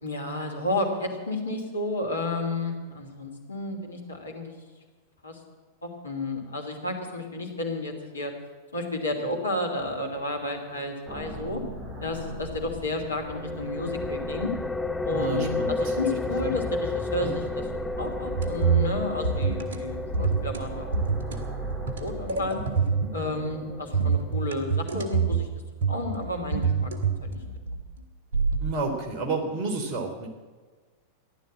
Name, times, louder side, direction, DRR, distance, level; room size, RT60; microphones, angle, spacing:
voice 1, 0.0-4.5 5.2-5.4 5.8-8.3 8.7-11.6 12.0-14.5 15.0-20.9 21.8-22.6 23.1-25.5 25.9-26.9 27.2-27.4, left 2 dB, 75° left, 2 dB, 2.9 m, -32 dB
sound 1, 11.1-24.1, equal, 20° right, 2.8 m, -39 dB
sound 2, 13.3-24.6, left 3 dB, 5° left, 0.6 m, -33 dB
voice 2, 15.1-16.6 17.2-17.4 28.6-30.3, right 3 dB, 40° right, 3 dB, 3.2 m, -31 dB
sound 3, 18.4-19.0 19.2-19.8 20.1-20.6 20.9-21.4 21.7-23.2 23.9-25.5 25.8-27.9 28.3-28.6, right 5 dB, 65° right, 1.9 m, -26 dB
15.0 x 11.5 x 7.5 m, 1.4 s
figure-of-eight pair, 90°, 0 cm